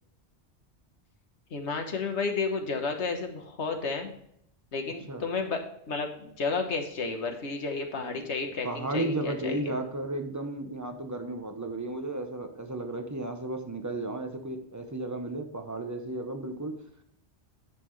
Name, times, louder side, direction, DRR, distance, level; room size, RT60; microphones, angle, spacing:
voice 1, 1.5-4.1 4.7-9.7, left 4 dB, 80° left, 4 dB, 1.5 m, -32 dB
voice 2, 8.6-16.8, right 2 dB, 15° right, 5 dB, 0.9 m, -34 dB
10.5 x 6.0 x 3.2 m, 0.72 s
omnidirectional pair, 1.1 m